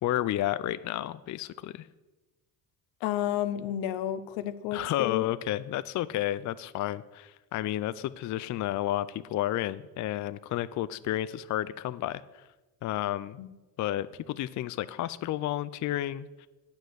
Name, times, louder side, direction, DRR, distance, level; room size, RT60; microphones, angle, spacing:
voice 1, 0.0-1.9 4.7-12.5 12.8-13.4 13.8-16.5, left 13 dB, 45° left, 15 dB, 0.4 m, -31 dB
voice 2, 3.0-5.2 13.4-13.5, left 12 dB, 85° left, 13 dB, 0.8 m, -31 dB
8.5 x 5.2 x 7.8 m, 1.1 s
supercardioid pair, 85°, 42 cm